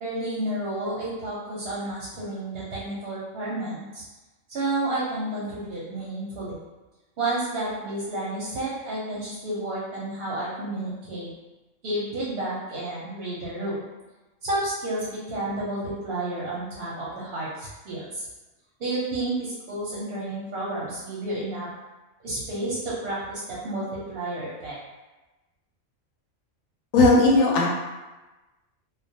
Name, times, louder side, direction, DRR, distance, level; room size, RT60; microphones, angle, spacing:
voice 1, 0.0-4.0 4.5-6.6 7.2-11.3 11.8-13.8 14.4-18.3 18.8-21.7 22.2-24.8, right 2 dB, 60° right, -7 dB, 0.7 m, -31 dB
voice 2, 26.9-27.7, left 2 dB, 85° left, -2 dB, 1.0 m, -17 dB
2.2 x 2.1 x 2.6 m, 1.1 s
omnidirectional pair, 1.4 m